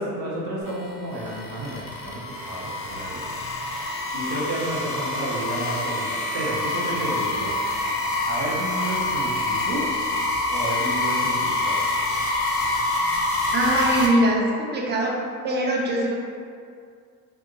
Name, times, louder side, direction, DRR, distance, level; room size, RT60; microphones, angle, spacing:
voice 1, 0.0-3.2 4.1-7.6 8.3-9.9 10.5-11.8, right 1 dB, 80° right, -6 dB, 0.9 m, -31 dB
sound 1, 0.7-14.1, left 2 dB, 30° left, 0.6 m, -26 dB
voice 2, 13.5-15.2 15.4-16.2, right 1 dB, 25° right, -2 dB, 0.4 m, -22 dB
2.6 x 2.4 x 2.6 m, 2.2 s
hypercardioid pair, 75°, 49 cm